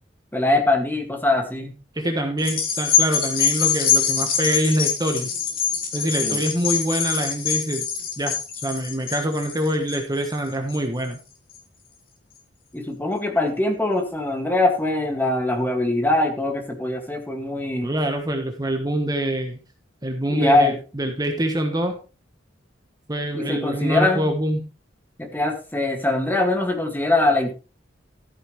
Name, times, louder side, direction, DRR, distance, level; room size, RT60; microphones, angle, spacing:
voice 1, 0.3-1.8 6.2-6.4 12.7-17.9 20.3-20.8 23.3-24.3 25.2-27.5, left 2 dB, 10° left, 3 dB, 2.1 m, -22 dB
voice 2, 1.9-5.3 5.9-7.8 8.2-11.2 17.8-19.6 20.0-22.0 23.1-24.7, right 1 dB, 20° right, 4 dB, 1.3 m, -25 dB
sound 1, 2.4-11.1 11.5-11.6, left 7 dB, 50° left, 3.0 m, -24 dB
14.0 x 9.2 x 3.2 m, 0.33 s
head